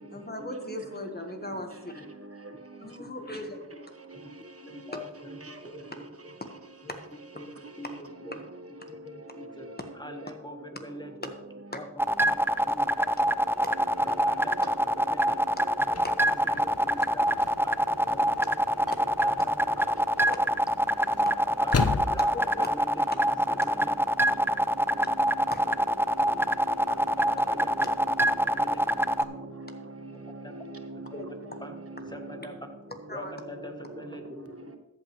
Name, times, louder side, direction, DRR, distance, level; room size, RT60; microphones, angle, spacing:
voice 1, 0.1-1.9 2.8-3.6 11.7-11.8 16.0-16.1 20.3-20.4 22.3-22.7 25.5-25.7 31.1-31.3 33.1-33.3, left 1 dB, 30° left, 1.4 m, -38 dB
voice 2, 3.0-3.6 4.1-4.3 4.6-6.0 7.3-7.5 7.8-8.3 9.0-9.7 10.0-11.3 11.7-12.4 12.6-13.3 14.0-14.7 15.0-15.4 15.8-15.9 16.2-17.3 17.6-17.7 18.1-18.3 19.4-19.8 21.6-21.7 22.0-24.0 27.2-27.7 28.4-28.8 30.4-30.6 31.1-31.3 31.6-31.7 32.0-32.6 33.1-34.7, left 1 dB, 15° left, 1.5 m, -43 dB
sound 1, 12.0-29.2, equal, 10° right, 0.5 m, -25 dB
voice 3, 13.7-14.6 15.3-15.7 24.2-24.5 25.1-25.5 26.1-28.4 29.0-29.8 30.5-31.4 31.8-32.4, right 2 dB, 50° right, 1.1 m, -42 dB
sound 2, 15.9-22.9, left 4 dB, 55° left, 0.7 m, -36 dB
14.0 x 8.2 x 3.2 m
wide cardioid pair, 40°, 30 cm